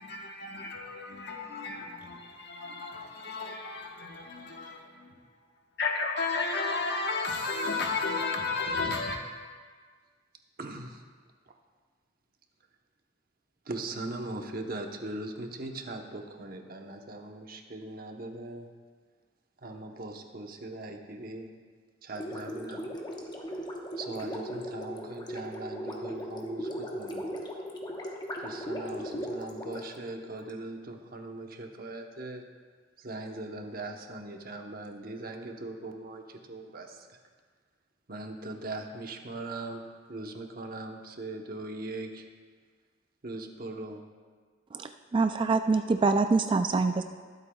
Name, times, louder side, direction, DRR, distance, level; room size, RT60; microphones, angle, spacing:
voice 1, 0.0-5.1 5.8-9.2, left 3 dB, 65° left, 2 dB, 1.2 m, -33 dB
voice 2, 10.6-11.0 13.7-18.7 19.6-21.5 22.0-22.9 24.0-27.2 28.4-32.4 33.0-37.1 38.1-39.8 40.1-42.2 43.2-44.0, right 2 dB, 55° right, 3 dB, 1.0 m, -40 dB
Gurgling, 22.1-30.5, equal, 25° left, 1.0 m, -38 dB
voice 3, 44.7-47.0, right 4 dB, 25° right, 7 dB, 0.3 m, -25 dB
21.0 x 8.0 x 2.3 m, 1.5 s
head